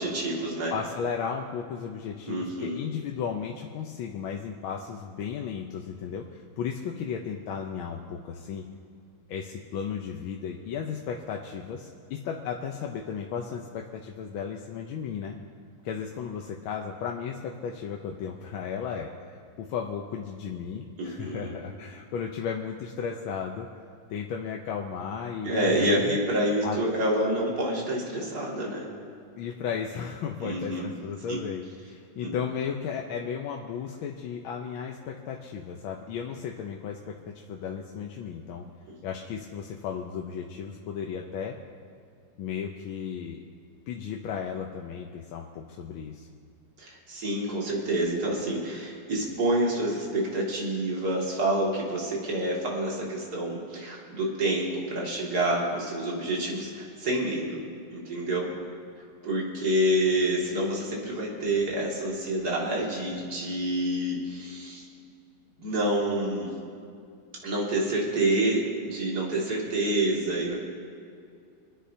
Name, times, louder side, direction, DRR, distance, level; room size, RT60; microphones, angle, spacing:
voice 1, 0.0-0.7 2.3-2.8 21.0-21.5 25.4-28.9 30.4-30.9 31.3-31.4 32.2-32.3 46.8-57.6 57.9-58.5 59.2-64.8 65.6-66.5 67.4-70.6, right 1 dB, 50° right, -4 dB, 2.8 m, -28 dB
voice 2, 0.7-8.7 9.3-15.3 15.8-23.7 24.1-26.2 26.6-26.8 29.4-37.1 37.5-38.6 39.0-41.6 42.4-43.4 43.9-46.3, left 7 dB, 85° left, 1 dB, 1.6 m, -35 dB
26.0 x 10.0 x 2.8 m, 2.4 s
omnidirectional pair, 2.2 m